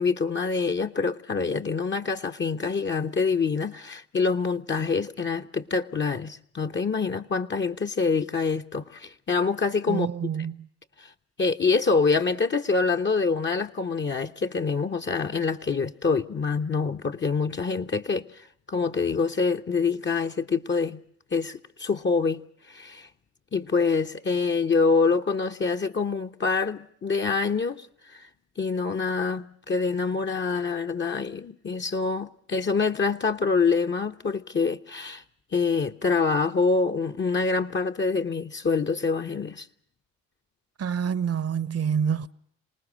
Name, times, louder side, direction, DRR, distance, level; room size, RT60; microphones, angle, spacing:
voice 1, 0.0-10.1 11.0-11.1 11.4-21.0 21.3-22.4 22.7-23.1 23.5-28.3 28.6-35.2 35.5-39.7, left 4 dB, 30° left, 1.1 m, -26 dB
voice 2, 9.9-10.7 40.8-42.3, right 7 dB, 45° right, 1.0 m, -27 dB
27.0 x 19.0 x 6.3 m
hypercardioid pair, 55°, 35 cm